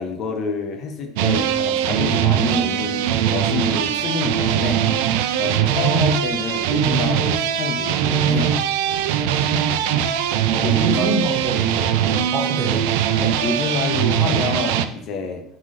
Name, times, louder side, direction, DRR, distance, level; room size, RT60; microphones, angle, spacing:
voice 1, 0.0-3.0 3.3-4.8 5.3-8.6 10.6-11.4 13.2-15.4, left 4 dB, 35° left, 4 dB, 0.5 m, -27 dB
sound 1, 1.2-14.9, right 9 dB, 80° right, 0.3 m, -21 dB
voice 2, 10.5-12.8, right 3 dB, 40° right, 0 dB, 0.9 m, -26 dB
3.9 x 3.7 x 3.2 m, 0.76 s
cardioid pair, 180°, 0 cm